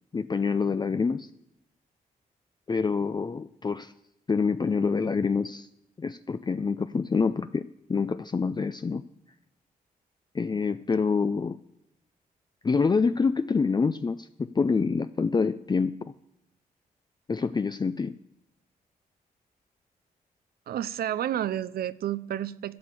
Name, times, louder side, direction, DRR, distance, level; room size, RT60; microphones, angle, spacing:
voice 1, 0.1-1.3 2.7-3.9 4.3-5.7 6.0-7.6 7.9-9.0 10.3-11.6 12.6-16.1 17.3-18.2, left 5 dB, 25° left, 0.5 m, -26 dB
voice 2, 20.7-22.8, right 11 dB, 75° right, 0.5 m, -30 dB
13.0 x 6.8 x 7.5 m
cardioid pair, 65°, 16 cm